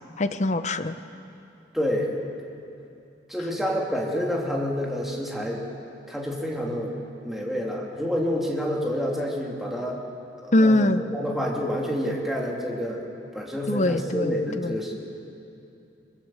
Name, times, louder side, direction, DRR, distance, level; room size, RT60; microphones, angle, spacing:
voice 1, 0.2-0.9 10.5-11.0 13.7-14.8, left 1 dB, 40° left, 10 dB, 0.8 m, -22 dB
voice 2, 1.7-2.1 3.3-5.6 6.1-10.0 10.4-10.9 11.1-13.0 13.3-15.0, equal, ahead, -2 dB, 3.2 m, -28 dB
22.0 x 22.0 x 7.9 m, 2.7 s
head